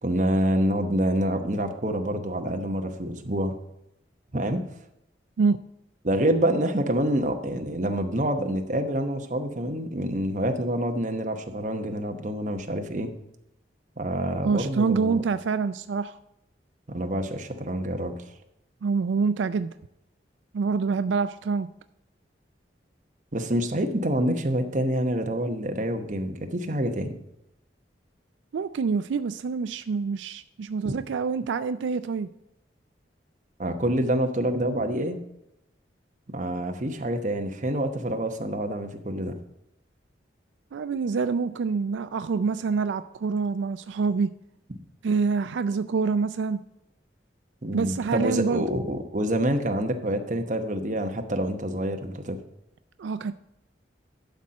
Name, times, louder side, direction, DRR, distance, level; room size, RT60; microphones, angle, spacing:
voice 1, 0.0-3.5 4.3-4.6 6.0-13.1 14.0-15.2 16.9-18.2 23.3-27.1 30.8-31.0 33.6-35.2 36.3-39.4 47.6-52.4, right 1 dB, 45° right, 5 dB, 0.9 m, -27 dB
voice 2, 14.4-16.2 18.8-19.7 20.5-21.7 28.5-32.3 40.7-44.3 45.0-46.6 47.7-48.7 53.0-53.3, right 5 dB, 85° right, 12 dB, 0.4 m, -26 dB
11.5 x 4.3 x 6.4 m, 0.85 s
head